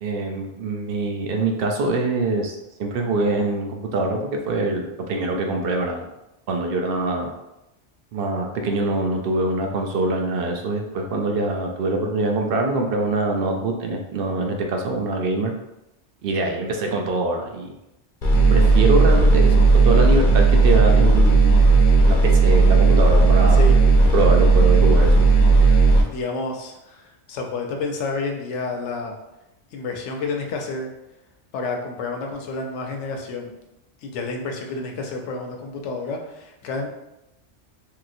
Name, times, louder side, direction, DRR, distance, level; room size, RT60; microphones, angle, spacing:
voice 1, 0.0-6.1 6.5-7.3 8.1-15.5 16.2-17.7 18.5-21.6 22.0-23.6 24.1-25.2, right 2 dB, 60° right, 2 dB, 0.7 m, -24 dB
sound 1, 18.2-26.0, right 3 dB, 50° left, 0.7 m, -14 dB
voice 2, 25.6-29.2 29.7-30.9 31.5-33.5 34.0-36.9, left 3 dB, 80° left, 2 dB, 0.9 m, -30 dB
3.0 x 2.8 x 2.6 m, 0.91 s
omnidirectional pair, 1.2 m